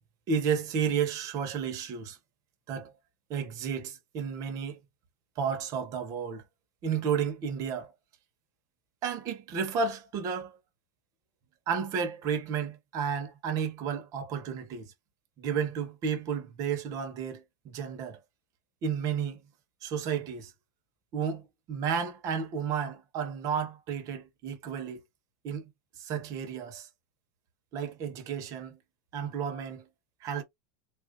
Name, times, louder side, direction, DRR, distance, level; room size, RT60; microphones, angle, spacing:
voice 1, 0.3-2.2 2.7-2.9 3.3-4.8 5.4-6.4 6.8-7.9 9.0-10.5 11.7-14.9 15.4-18.2 18.8-19.4 19.8-20.5 21.1-21.4 21.7-25.0 25.4-25.7 26.0-26.9 27.7-28.8 29.1-29.8 30.2-30.4, right 7 dB, 35° right, 1.0 m, -32 dB
4.0 x 2.5 x 2.8 m
supercardioid pair, 155°, 10 cm